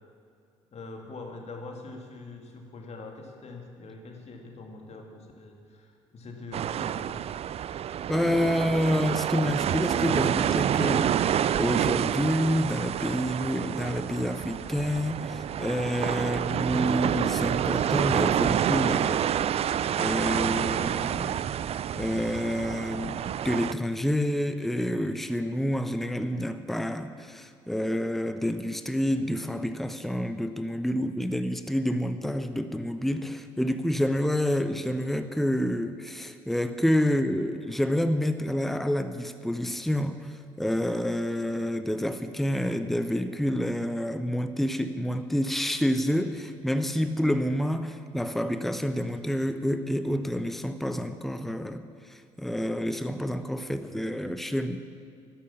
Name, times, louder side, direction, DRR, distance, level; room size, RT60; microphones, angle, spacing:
voice 1, 0.7-7.3, left 2 dB, 45° left, 2 dB, 2.5 m, -43 dB
sound 1, 6.5-23.7, right 10 dB, 40° right, 0.4 m, -28 dB
voice 2, 8.1-19.2 19.9-21.4 21.9-54.8, equal, ahead, 10 dB, 0.9 m, -28 dB
12.5 x 11.5 x 7.3 m, 2.3 s
hypercardioid pair, 50°, 15 cm